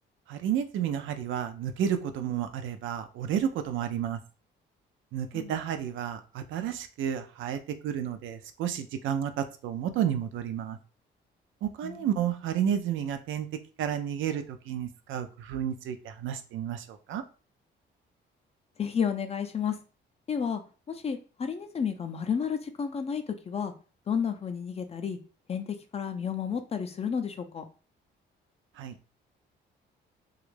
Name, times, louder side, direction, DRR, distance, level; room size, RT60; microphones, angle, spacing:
voice 1, 0.3-4.2 5.1-10.8 11.6-13.5 13.8-17.2 28.8-28.9, right 9 dB, 75° right, 9 dB, 0.4 m, -31 dB
voice 2, 18.8-19.8 20.3-20.6 20.9-23.7 24.1-25.2 25.5-27.6, left 7 dB, 30° left, 7 dB, 0.4 m, -31 dB
2.3 x 2.0 x 3.1 m, 0.36 s
cardioid pair, 90°, 20 cm